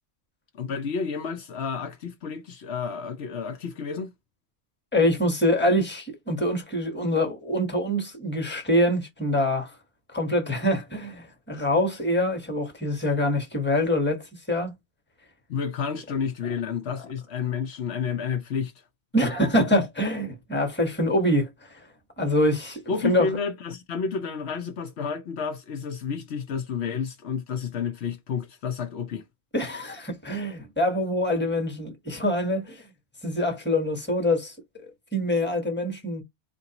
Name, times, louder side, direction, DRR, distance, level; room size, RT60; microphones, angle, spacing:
voice 1, 0.5-4.1 15.5-18.7 22.9-29.2, left 6 dB, 70° left, 1.0 m, -30 dB
voice 2, 4.9-9.7 10.1-14.2 14.5-14.8 19.1-21.8 22.2-23.3 29.5-32.8 33.2-34.5 35.1-36.2, left 1 dB, 10° left, 1.2 m, -25 dB
4.4 x 2.6 x 2.9 m
omnidirectional pair, 1.2 m